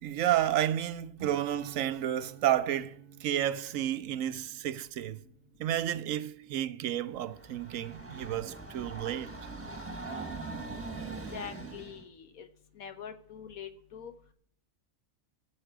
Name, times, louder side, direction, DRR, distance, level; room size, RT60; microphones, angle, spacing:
voice 1, 0.0-5.2 5.6-9.3, right 11 dB, 75° right, 1.0 m, -31 dB
Acoustic guitar / Strum, 1.2-7.1, right 10 dB, 55° right, 0.7 m, -51 dB
Train, 7.1-12.0, right 3 dB, 10° right, 1.3 m, -41 dB
voice 2, 11.3-12.5 12.7-14.1, left 8 dB, 85° left, 1.5 m, -44 dB
17.5 x 7.3 x 4.7 m
omnidirectional pair, 1.4 m